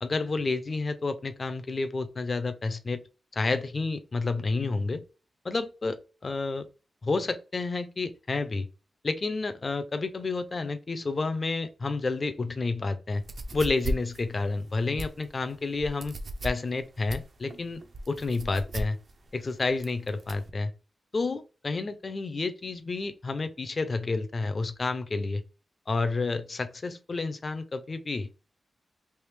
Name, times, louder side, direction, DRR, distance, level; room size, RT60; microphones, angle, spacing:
voice 1, 0.0-3.0 3.3-5.0 5.4-6.0 6.2-6.7 7.0-8.7 9.0-13.2 13.5-16.1 16.4-19.0 19.3-20.7 21.1-25.4 25.9-28.5, left 3 dB, 35° left, 0.4 m, -30 dB
sound 1, 13.1-20.5, right 1 dB, 45° right, 0.4 m, -37 dB
3.4 x 2.7 x 3.1 m
wide cardioid pair, 135°, 0 cm